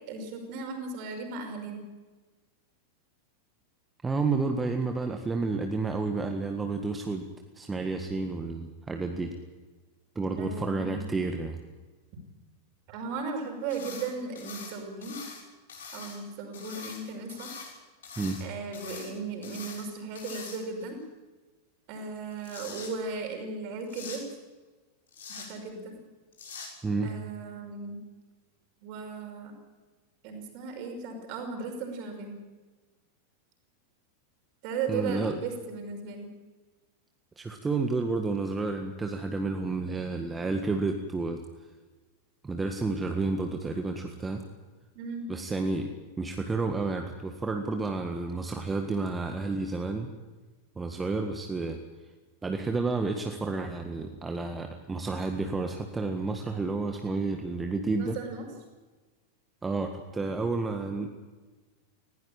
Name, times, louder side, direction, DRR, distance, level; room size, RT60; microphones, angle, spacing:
voice 1, 0.1-1.8 10.4-11.0 12.9-15.2 15.9-17.6 18.4-21.0 21.9-24.2 25.3-25.9 27.0-28.0 28.8-29.6 30.2-32.3 34.6-36.3 44.9-45.3 58.0-58.5, right 4 dB, 45° right, 4 dB, 5.6 m, -36 dB
voice 2, 4.0-7.3 7.5-9.3 10.1-11.6 18.2-18.4 26.8-27.1 34.9-35.3 37.4-41.4 42.4-44.4 45.3-45.9 46.2-50.1 50.7-51.8 52.4-58.2 59.6-61.1, right 3 dB, 15° right, 4 dB, 1.7 m, -30 dB
sound 1, 13.7-14.1 14.4-15.4 15.7-16.2 16.5-17.7 18.0-18.4 18.7-19.1 19.4-19.8 20.2-20.8 22.2-22.9 23.9-24.2 25.1-25.5 26.3-26.7, left 5 dB, 65° left, 6.7 m, -43 dB
20.0 x 17.0 x 8.9 m, 1.3 s
figure-of-eight pair, 90°, 0 cm